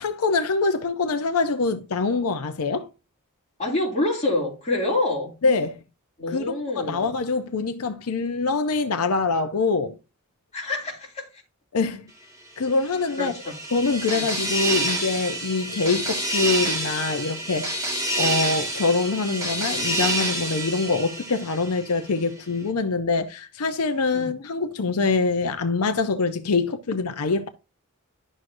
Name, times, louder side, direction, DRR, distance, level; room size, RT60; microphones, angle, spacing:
voice 1, 0.0-2.9 5.4-5.8 6.3-6.4 6.7-10.0 11.7-12.0 12.6-13.3 13.7-17.9 18.2-27.5, left 4 dB, 85° left, 0.6 m, -24 dB
voice 2, 3.6-5.3 6.2-7.1 10.5-11.3 13.2-13.6 14.1-14.3 24.1-24.3, left 2 dB, 30° left, 2.9 m, -26 dB
sound 1, 12.8-22.0, right 1 dB, 15° right, 1.8 m, -28 dB
11.0 x 6.2 x 2.6 m
head